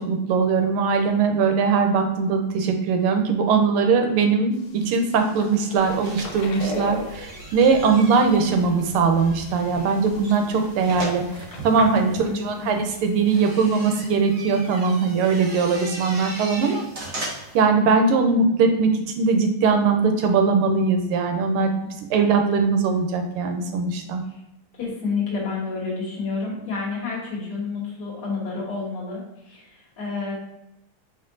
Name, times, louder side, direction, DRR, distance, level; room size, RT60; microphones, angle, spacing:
voice 1, 0.0-11.2 11.6-16.8 17.5-18.9 19.2-24.2, right 4 dB, 85° right, 5 dB, 1.5 m, -21 dB
sound 1, 4.5-7.6 8.0-8.4 9.0-9.1 9.4-12.2, left 1 dB, 70° left, 0.9 m, -38 dB
sound 2, 5.8-17.6, right 2 dB, 45° right, 1.0 m, -38 dB
voice 2, 12.0-12.8 24.3-24.4 24.8-30.3, left 4 dB, 55° left, -3 dB, 1.6 m, -30 dB
4.4 x 3.7 x 2.5 m, 0.90 s
omnidirectional pair, 2.3 m